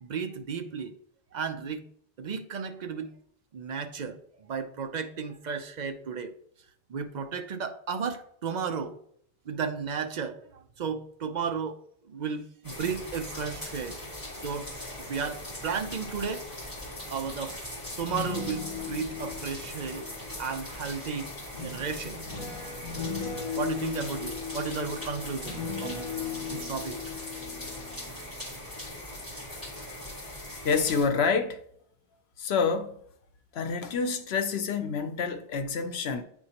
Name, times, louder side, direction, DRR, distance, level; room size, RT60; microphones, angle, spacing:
voice 1, 0.0-0.9 1.3-1.8 2.2-3.1 3.5-6.3 6.9-9.0 9.5-11.8 12.0-14.0 14.4-14.7 15.1-16.5 17.1-17.6 18.0-20.1 20.4-21.3 21.6-22.2 23.5-26.1 26.4-27.0 29.0-29.1 30.1-30.2, right 6 dB, 50° right, 0.6 m, -34 dB
sound 1, 12.6-31.0, left 1 dB, 20° left, 1.9 m, -40 dB
sound 2, 17.9-20.8 21.5-28.5 28.8-29.2, left 6 dB, 50° left, 2.0 m, -38 dB
voice 2, 30.6-31.6 32.4-33.0 33.5-36.2, left 5 dB, 85° left, 0.9 m, -27 dB
8.7 x 4.5 x 2.9 m
omnidirectional pair, 1.0 m